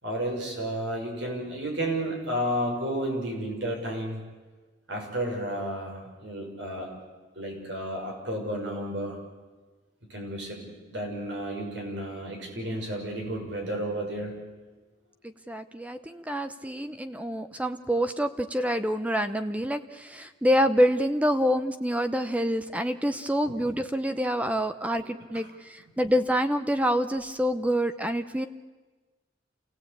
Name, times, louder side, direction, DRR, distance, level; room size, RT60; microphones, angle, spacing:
voice 1, 0.0-4.2 4.9-6.9 7.3-9.2 10.1-14.4 23.4-23.5, right 1 dB, 75° right, 1 dB, 6.3 m, -32 dB
voice 2, 15.2-28.5, equal, 10° right, 9 dB, 0.7 m, -27 dB
28.0 x 17.0 x 8.5 m, 1.3 s
head